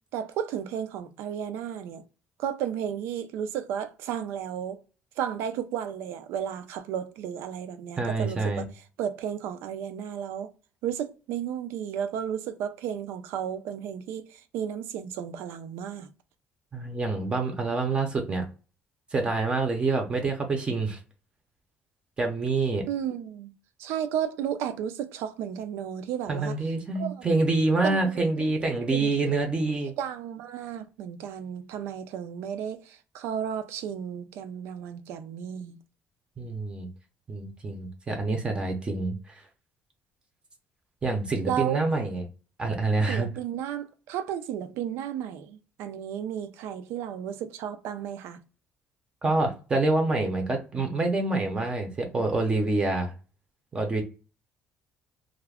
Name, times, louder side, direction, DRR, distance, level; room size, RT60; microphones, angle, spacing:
voice 1, 0.1-2.0 2.4-4.8 5.2-8.6 9.0-10.5 10.8-16.1 22.9-23.5 23.8-26.6 27.0-27.3 27.8-28.0 28.4-29.3 30.0-35.8 41.5-41.8 43.1-48.4, right 9 dB, 85° right, 0.4 m, -33 dB
voice 2, 8.0-8.7 16.7-18.5 19.1-21.0 22.2-22.8 26.3-29.9 36.4-36.9 37.3-39.2 41.0-42.2 42.6-43.3 49.2-53.1 53.7-54.0, right 3 dB, 25° right, 0.6 m, -26 dB
2.3 x 2.1 x 3.4 m
cardioid pair, 140°, 4 cm